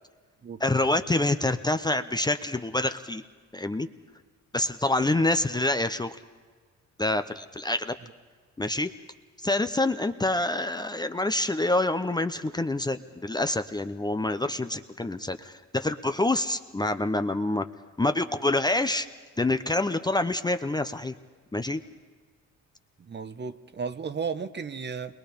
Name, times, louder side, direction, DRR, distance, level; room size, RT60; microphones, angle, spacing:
voice 1, 0.6-3.2 3.5-3.9 4.5-6.2 7.0-8.0 8.6-8.9 9.4-17.7 18.0-19.1 19.4-21.2 21.5-21.8, left 2 dB, 15° left, 0.7 m, -26 dB
voice 2, 23.0-25.1, right 5 dB, 35° right, 0.9 m, -34 dB
28.0 x 22.0 x 5.2 m
cardioid pair, 90°, 30 cm